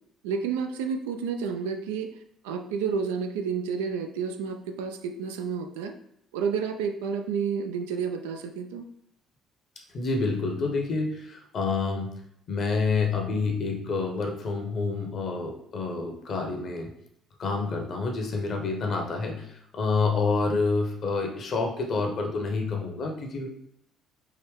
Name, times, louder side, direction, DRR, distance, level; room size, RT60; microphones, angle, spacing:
voice 1, 0.2-2.2 2.4-5.9 6.3-8.9, right 6 dB, 70° right, 5 dB, 0.4 m, -30 dB
voice 2, 9.9-12.2 12.5-16.9 17.4-23.5, left 4 dB, 45° left, 2 dB, 1.0 m, -28 dB
4.8 x 3.0 x 3.2 m, 0.74 s
figure-of-eight pair, 50°, 0 cm